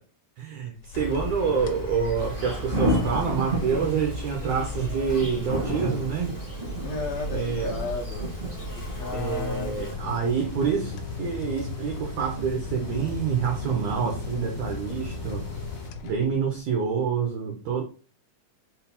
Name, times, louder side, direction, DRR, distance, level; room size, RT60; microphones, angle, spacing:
voice 1, 0.4-6.3 7.3-7.8 9.1-15.4 16.0-17.8, right 6 dB, 90° right, 2 dB, 1.4 m, -27 dB
sound 1, 0.8-1.3 1.6-1.9 2.4-16.7, left 4 dB, 90° left, 2.2 m, -38 dB
Insect, 0.9-9.9, left 1 dB, 50° left, 0.6 m, -35 dB
sound 2, 2.1-15.9, right 1 dB, 55° right, 0.6 m, -34 dB
voice 2, 6.8-8.3 8.6-9.9, left 4 dB, 75° left, -2 dB, 1.6 m, -34 dB
5.4 x 2.0 x 4.2 m, 0.37 s
omnidirectional pair, 3.8 m